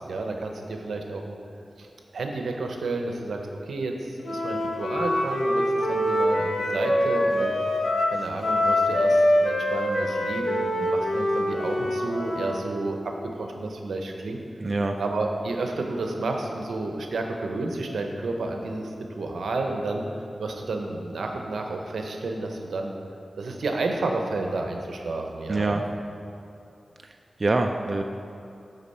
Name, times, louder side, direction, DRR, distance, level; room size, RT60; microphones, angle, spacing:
voice 1, 0.0-1.4 1.8-1.9 2.1-3.4 3.7-7.6 8.1-14.4 15.0-20.0 20.4-22.9 23.4-25.8, right 2 dB, 85° right, 3 dB, 0.7 m, -31 dB
Wind instrument woodwind instrument, 4.2-12.7, left 1 dB, 75° left, 1.0 m, -24 dB
voice 2, 14.6-15.0 25.5-25.8 27.4-28.0, right 2 dB, 45° right, 4 dB, 0.4 m, -24 dB
12.0 x 4.0 x 4.2 m, 2.6 s
cardioid pair, 50°, 0 cm